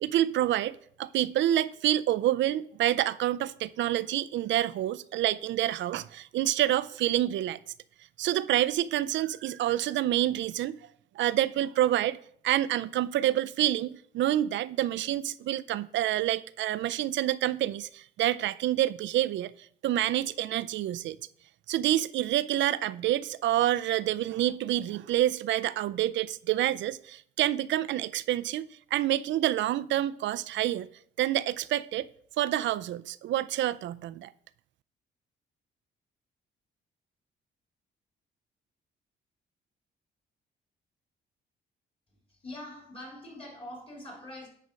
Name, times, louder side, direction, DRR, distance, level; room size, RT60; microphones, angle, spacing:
voice 1, 0.0-7.6 8.2-10.8 11.2-12.2 12.4-19.5 19.8-21.2 21.7-30.9 31.2-32.1 32.4-34.3, right 13 dB, 70° right, 0.4 m, -28 dB
voice 2, 42.3-44.5, left 1 dB, 30° left, 3.0 m, -43 dB
9.5 x 4.3 x 5.1 m
cardioid pair, 90°, 20 cm